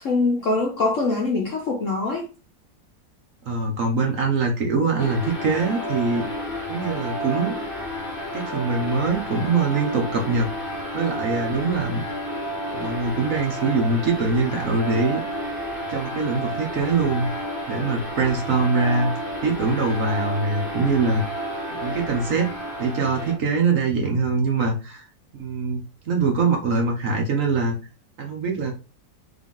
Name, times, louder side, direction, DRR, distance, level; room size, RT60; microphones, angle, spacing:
voice 1, 0.0-2.3, left 3 dB, 55° left, 0.9 m, -23 dB
voice 2, 3.5-6.3 6.7-7.6 8.3-10.5 10.9-12.0 12.7-15.2 15.9-21.2 21.8-22.5 22.8-25.1 25.4-27.7 28.2-28.7, right 4 dB, 55° right, 1.1 m, -23 dB
sound 1, 5.0-23.4, equal, 35° left, 1.2 m, -31 dB
3.8 x 2.8 x 3.6 m
omnidirectional pair, 2.0 m